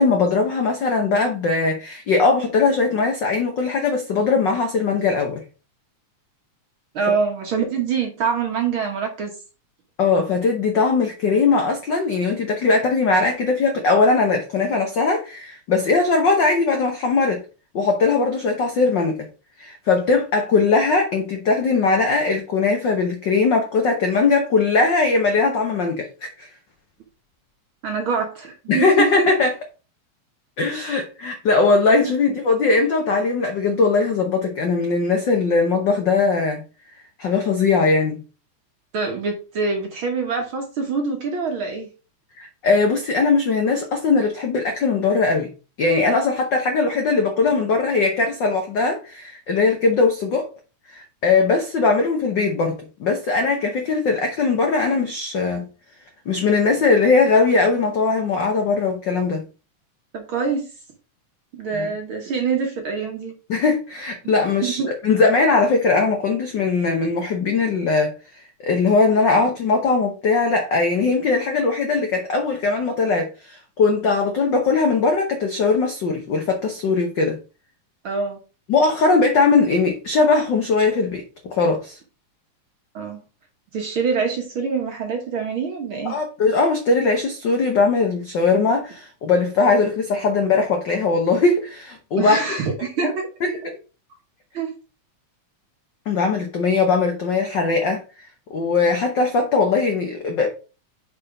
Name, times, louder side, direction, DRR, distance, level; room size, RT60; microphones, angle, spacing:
voice 1, 0.0-5.4 10.0-17.4 17.7-19.3 19.6-26.5 28.7-29.5 30.6-36.6 37.2-38.2 42.4-45.5 45.8-50.5 50.9-55.7 56.3-59.4 61.7-61.9 63.5-77.4 78.7-82.0 86.0-92.4 93.0-93.1 93.4-93.5 96.1-98.0 98.5-100.5, left 4 dB, 80° left, 1.0 m, -20 dB
voice 2, 6.9-9.3 27.8-29.3 38.9-41.9 60.1-60.7 61.5-63.3 64.6-64.9 78.0-78.4 82.9-83.2 83.7-86.2 92.2-93.3 94.5-94.7, right 5 dB, 60° right, 1.5 m, -25 dB
5.6 x 4.6 x 4.9 m
omnidirectional pair, 3.5 m